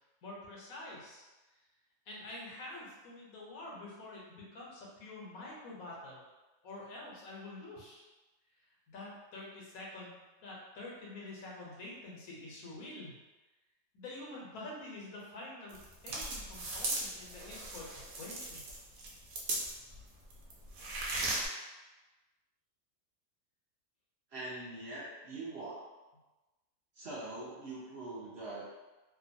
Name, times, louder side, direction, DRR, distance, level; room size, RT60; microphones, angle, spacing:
voice 1, 0.2-1.2 2.1-6.2 6.6-8.0 8.9-13.2 13.9-18.7, left 2 dB, 85° left, -4 dB, 1.2 m, -47 dB
sound 1, 15.7-20.0 20.3-21.5, right 2 dB, 80° right, 1.0 m, -37 dB
voice 2, 24.3-25.8 27.0-28.7, right 2 dB, 60° right, -7 dB, 0.8 m, -43 dB
2.9 x 2.1 x 2.5 m, 1.1 s
omnidirectional pair, 1.5 m